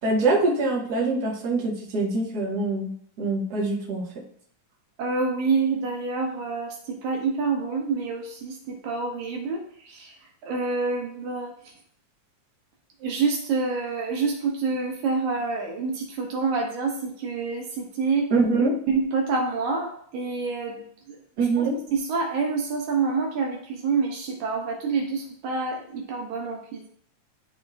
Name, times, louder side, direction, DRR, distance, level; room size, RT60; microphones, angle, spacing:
voice 1, 0.0-2.9 3.2-4.0 18.3-18.8 21.4-21.8, right 3 dB, 35° right, -5 dB, 1.8 m, -24 dB
voice 2, 5.0-10.1 10.4-11.5 13.0-18.3 18.9-20.8 21.6-21.7 21.9-26.9, right 4 dB, 75° right, 1 dB, 2.2 m, -27 dB
12.5 x 4.2 x 2.5 m, 0.63 s
omnidirectional pair, 3.5 m